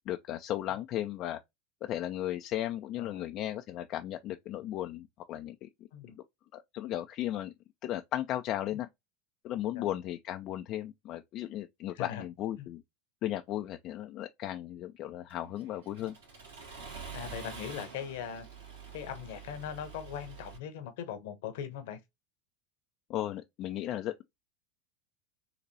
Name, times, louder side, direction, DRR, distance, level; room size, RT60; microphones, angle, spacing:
voice 1, 0.1-1.4 1.8-5.7 6.2-6.3 6.5-7.5 7.8-8.9 9.4-12.8 13.2-16.2 23.1-24.2, left 13 dB, 45° left, 0.4 m, -35 dB
voice 2, 11.9-12.2 12.6-12.7 16.0-16.1 17.1-18.5 18.9-22.0, left 9 dB, 60° left, 0.9 m, -40 dB
Accelerating revving vroom, 15.3-20.6, right 5 dB, 75° right, 1.8 m, -47 dB
4.0 x 2.9 x 2.7 m
figure-of-eight pair, 85°, 0 cm